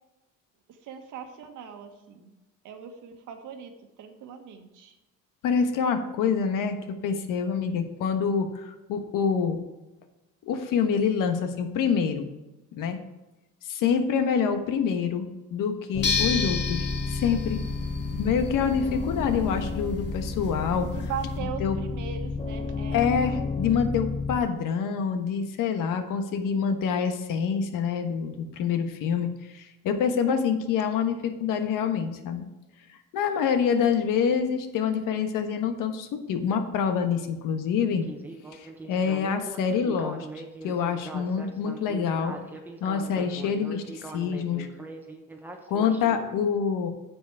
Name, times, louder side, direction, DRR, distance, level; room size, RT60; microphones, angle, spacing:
voice 1, 0.8-2.3 2.6-3.7 4.0-4.9 20.8-23.1, right 7 dB, 70° right, 5 dB, 1.6 m, -39 dB
voice 2, 5.4-6.8 7.0-9.6 10.4-12.3 12.8-13.0 13.7-17.6 18.2-20.9 21.4-21.8 22.9-32.5 33.1-38.1 38.5-40.3 40.6-42.3 42.8-44.7 45.7-46.9, left 6 dB, 75° left, 7 dB, 1.4 m, -26 dB
sound 1, 15.9-24.4, left 3 dB, 15° left, 0.8 m, -31 dB
sound 2, 16.0-21.4, left 5 dB, 35° left, 1.7 m, -33 dB
Speech synthesizer, 38.0-46.3, right 2 dB, 5° right, 1.1 m, -41 dB
9.3 x 7.4 x 4.7 m, 1.1 s
cardioid pair, 145°, 32 cm